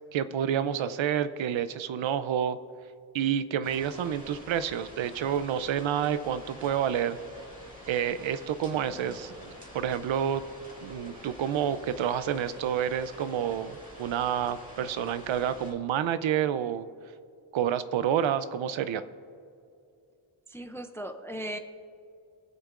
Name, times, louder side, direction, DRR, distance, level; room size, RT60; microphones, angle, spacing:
voice 1, 0.1-2.6 3.1-7.2 7.9-10.4 10.8-16.9 17.5-19.0, right 9 dB, 70° right, 13 dB, 0.6 m, -29 dB
sound 1, 3.6-15.7, equal, 15° right, 1.9 m, -47 dB
voice 2, 20.5-21.6, right 1 dB, 5° left, 7 dB, 0.4 m, -37 dB
24.0 x 8.2 x 2.5 m, 2.4 s
wide cardioid pair, 175°, 49 cm